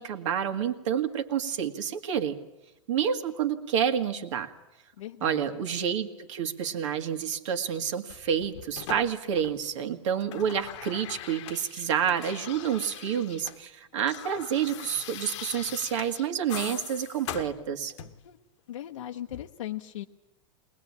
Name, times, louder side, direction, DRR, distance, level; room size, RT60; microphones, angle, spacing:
voice 1, 0.0-2.4 2.9-4.5 5.2-17.9, right 8 dB, 70° right, 7 dB, 2.0 m, -29 dB
voice 2, 5.0-5.4 18.2-18.4 18.7-20.0, left 12 dB, 90° left, 3 dB, 0.9 m, -38 dB
sound 1, 8.1-9.8 10.1-13.6 13.9-18.3 19.3-19.5, left 11 dB, 65° left, 1.1 m, -42 dB
21.5 x 20.0 x 8.6 m, 0.95 s
supercardioid pair, 140°, 16 cm